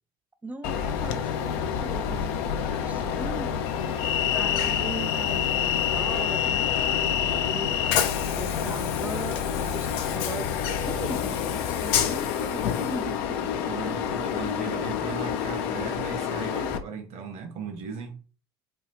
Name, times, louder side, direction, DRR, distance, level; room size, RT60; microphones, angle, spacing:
voice 1, 0.4-3.6 4.3-7.7 8.4-10.5 10.7-14.1, right 2 dB, 10° right, 0.4 m, -39 dB
Train, 0.6-16.8, left 8 dB, 70° left, 0.5 m, -27 dB
voice 2, 13.6-18.2, right 5 dB, 55° right, 1.2 m, -37 dB
4.2 x 2.3 x 2.8 m
hypercardioid pair, 70°, 13 cm